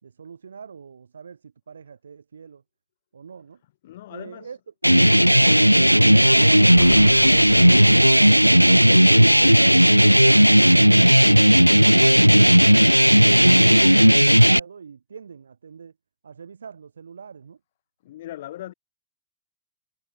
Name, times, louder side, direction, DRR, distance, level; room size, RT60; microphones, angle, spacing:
voice 1, 0.0-2.6 3.1-3.6 4.1-4.6 5.3-9.5 9.9-15.9 16.2-17.6, right 6 dB, 70° right, 4.2 m, -43 dB
voice 2, 3.6-4.6 18.0-18.7, left 14 dB, 55° left, 6.7 m, -41 dB
sound 1, 4.8-14.6, equal, 90° right, 0.6 m, -14 dB
sound 2, 6.7-9.6 9.9-10.0, left 11 dB, 30° left, 5.2 m, -42 dB
figure-of-eight pair, 90°, 0 cm